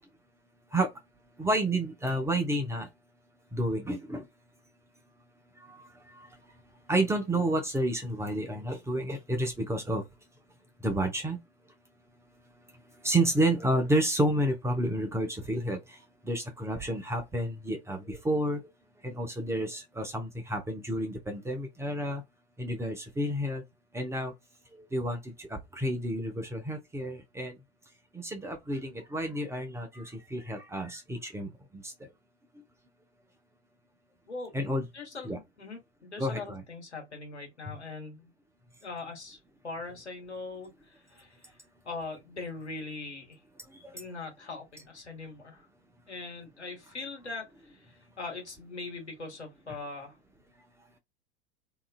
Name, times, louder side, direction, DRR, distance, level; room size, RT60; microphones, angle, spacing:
voice 1, 1.4-2.9 3.5-4.2 6.9-10.0 10.8-11.4 13.0-15.8 16.3-18.6 19.0-22.2 22.6-23.6 23.9-24.3 24.9-25.2 25.8-27.5 28.2-31.5 34.5-34.9 35.2-35.4 36.2-36.6, right 1 dB, 10° right, 0.6 m, -30 dB
voice 2, 34.9-38.3 38.8-39.4 39.6-41.5 41.8-43.4 43.9-45.7 46.1-50.2, left 3 dB, 85° left, 1.3 m, -41 dB
2.7 x 2.4 x 2.4 m
figure-of-eight pair, 90°, 33 cm